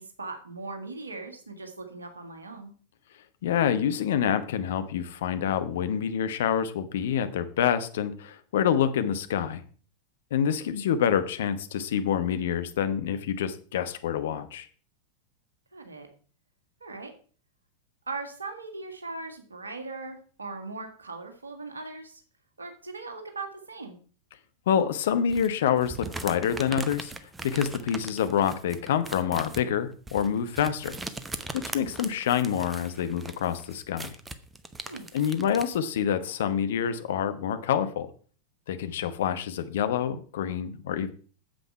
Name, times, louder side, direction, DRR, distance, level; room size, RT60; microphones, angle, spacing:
voice 1, 0.0-2.7 15.7-16.1 16.8-17.1 18.1-22.2 22.6-24.0 34.9-35.1, right 3 dB, 75° right, 5 dB, 1.8 m, -39 dB
voice 2, 3.4-9.6 10.3-14.7 24.7-27.1 27.4-31.0 31.5-34.2 35.1-38.1 38.7-41.1, left 8 dB, 60° left, 10 dB, 1.0 m, -27 dB
sound 1, 25.3-35.8, right 3 dB, 10° right, 0.8 m, -40 dB
8.9 x 7.7 x 4.7 m, 0.41 s
figure-of-eight pair, 90°, 0 cm